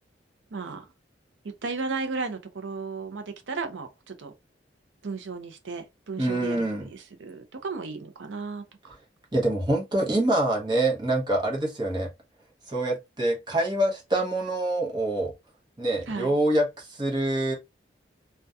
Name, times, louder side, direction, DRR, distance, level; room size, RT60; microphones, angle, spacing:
voice 1, 0.5-0.9 1.4-4.3 5.0-9.0 16.1-16.3, right 4 dB, 85° right, 0.5 m, -35 dB
voice 2, 6.2-6.9 9.3-12.1 12.7-15.3 15.8-17.5, right 1 dB, 25° right, 0.7 m, -25 dB
2.6 x 2.2 x 2.3 m
head